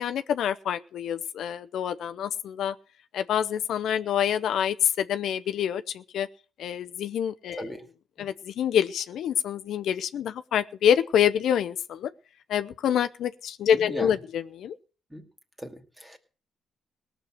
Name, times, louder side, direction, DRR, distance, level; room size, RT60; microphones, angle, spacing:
voice 1, 0.0-2.7 3.1-6.3 6.6-7.7 8.2-12.1 12.5-14.7, left 9 dB, 70° left, 10 dB, 0.7 m, -26 dB
voice 2, 7.5-7.9 8.2-8.3 13.7-14.2 15.1-15.3 15.6-16.2, right 1 dB, 10° right, 7 dB, 2.4 m, -38 dB
18.0 x 6.6 x 7.5 m, 0.38 s
cardioid pair, 90°, 0 cm